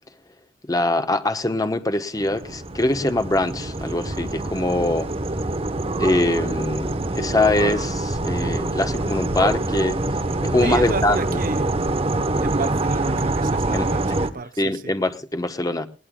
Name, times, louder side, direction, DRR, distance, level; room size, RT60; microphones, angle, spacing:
voice 1, 0.6-5.1 6.0-10.0 10.4-11.4 13.7-13.9 14.6-15.9, left 2 dB, 20° left, 1.0 m, -23 dB
sound 1, 2.2-14.3, right 2 dB, 30° right, 1.0 m, -25 dB
voice 2, 10.6-11.7 12.4-14.9, right 3 dB, 50° right, 0.7 m, -31 dB
20.5 x 17.5 x 2.3 m
head